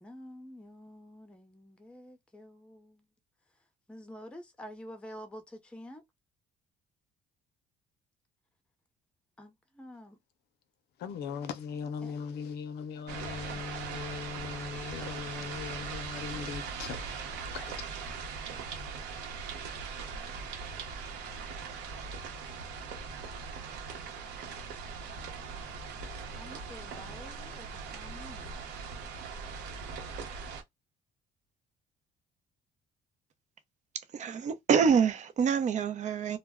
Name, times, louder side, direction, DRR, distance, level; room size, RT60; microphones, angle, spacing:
voice 1, 0.0-3.1 3.5-6.0 9.4-10.2 12.0-12.1 26.4-28.6, equal, 5° left, 0.6 m, -49 dB
voice 2, 11.0-17.0 17.3-17.9, left 6 dB, 75° left, 0.6 m, -39 dB
sound 1, 13.1-30.6, right 5 dB, 85° right, 0.9 m, -40 dB
voice 3, 34.1-36.4, right 6 dB, 45° right, 0.6 m, -26 dB
2.1 x 2.1 x 3.4 m
cardioid pair, 110°, 17 cm